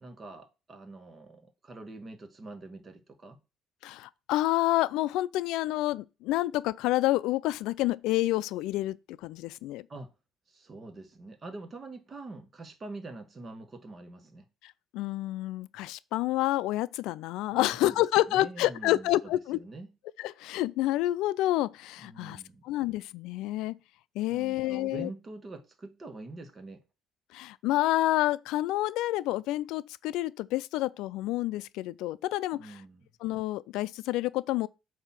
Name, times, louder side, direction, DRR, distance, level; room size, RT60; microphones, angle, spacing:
voice 1, 0.0-3.4 9.9-10.1 10.5-14.4 17.5-19.9 22.0-22.6 24.3-26.8 32.5-33.1, right 2 dB, 30° right, 1.3 m, -45 dB
voice 2, 3.8-9.8 14.6-19.6 20.2-23.8 24.2-25.1 27.3-32.8 33.2-34.7, left 16 dB, 85° left, 0.3 m, -29 dB
8.0 x 2.8 x 5.8 m
cardioid pair, 110°, 0 cm